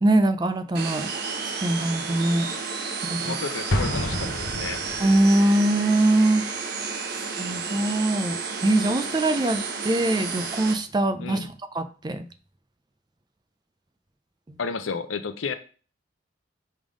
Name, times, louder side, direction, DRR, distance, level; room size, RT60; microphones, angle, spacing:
voice 1, 0.0-1.1 1.6-2.5 3.0-3.3 5.0-6.5 7.4-11.4 11.8-12.3 14.5-14.6, right 1 dB, 20° right, 0.4 m, -22 dB
sound 1, 0.7-10.7, right 5 dB, 55° right, 0.9 m, -32 dB
voice 2, 3.2-4.8 11.2-11.5 14.6-15.5, left 5 dB, 90° left, 0.6 m, -32 dB
Explosion, 3.7-5.4, left 1 dB, 65° left, 0.8 m, -28 dB
5.4 x 3.5 x 5.0 m
head